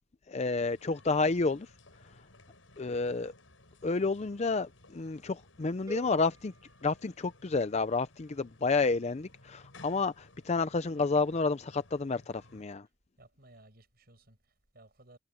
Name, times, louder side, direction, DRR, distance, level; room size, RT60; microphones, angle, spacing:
voice 1, 0.3-1.7 2.8-3.3 3.8-6.5 6.8-12.9, left 3 dB, 35° left, 0.5 m, -30 dB
sound 1, 0.6-12.7, left 2 dB, 85° left, 6.8 m, -58 dB
sound 2, 5.9-7.9, equal, 20° right, 5.0 m, -50 dB
voice 2, 13.2-15.2, right 2 dB, 50° right, 7.0 m, -58 dB
head